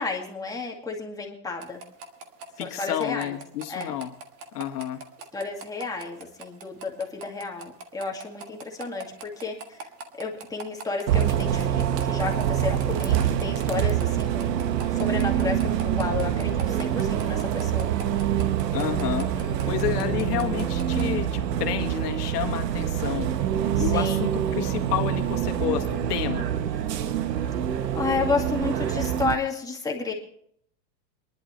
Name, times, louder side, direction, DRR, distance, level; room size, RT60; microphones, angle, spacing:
voice 1, 0.0-1.8 2.6-3.4 3.7-4.0 5.3-9.9 10.2-17.9 19.3-19.8 23.8-24.3 27.9-30.1, left 4 dB, 5° left, 0 dB, 2.2 m, -32 dB
sound 1, 1.6-21.1, right 3 dB, 25° right, 1.6 m, -41 dB
voice 2, 2.6-4.1 4.5-5.0 18.7-19.3 19.7-23.3 23.8-26.5, left 11 dB, 65° left, 6 dB, 1.9 m, -30 dB
Bus, 11.1-29.3, right 10 dB, 70° right, 1.3 m, -26 dB
23.0 x 11.5 x 3.2 m, 0.66 s
hypercardioid pair, 145°, 50 cm